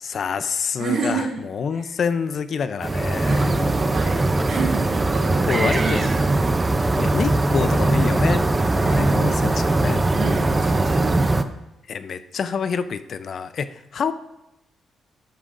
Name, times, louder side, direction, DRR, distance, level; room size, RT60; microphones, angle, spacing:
voice 1, 0.0-3.5 5.5-6.1 7.0-8.5 8.8-10.1 11.9-14.1, left 6 dB, 50° left, 11 dB, 0.5 m, -27 dB
voice 2, 0.8-1.4 1.7-1.9 3.3-6.4 8.8-9.3 10.1-11.3, right 4 dB, 65° right, -2 dB, 2.7 m, -29 dB
sound 1, 2.8-11.4, right 2 dB, 15° right, 0.5 m, -20 dB
12.5 x 9.9 x 2.5 m, 0.93 s
cardioid pair, 145°, 0 cm